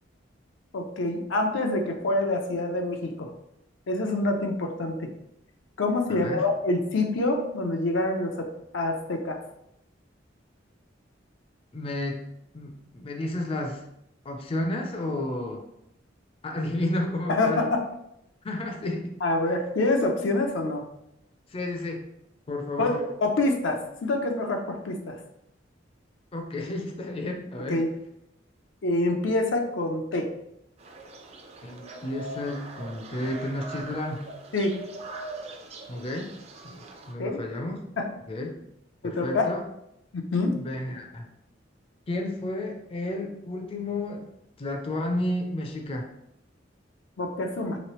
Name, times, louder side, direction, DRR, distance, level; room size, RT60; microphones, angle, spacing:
voice 1, 0.7-3.3 3.9-5.1 5.8-8.5 8.7-9.4 17.3-17.8 19.2-20.8 22.8-25.2 27.7-27.9 28.8-30.3 34.5-34.7 37.2-37.4 38.0-38.1 39.0-39.5 40.1-40.5 47.2-47.8, left 2 dB, 90° left, 3 dB, 0.5 m, -26 dB
voice 2, 6.1-6.4 11.7-12.2 12.5-13.8 14.2-15.6 16.4-17.7 18.4-19.1 21.5-22.0 22.5-23.0 26.3-27.8 31.6-34.3 35.9-36.3 36.6-37.8 38.3-38.5 39.0-39.6 40.5-41.3 42.1-44.3 44.6-46.1, left 1 dB, 30° left, 2 dB, 0.4 m, -31 dB
sound 1, 30.8-37.1, right 2 dB, 35° right, 0.4 m, -42 dB
3.2 x 3.0 x 3.0 m, 0.80 s
head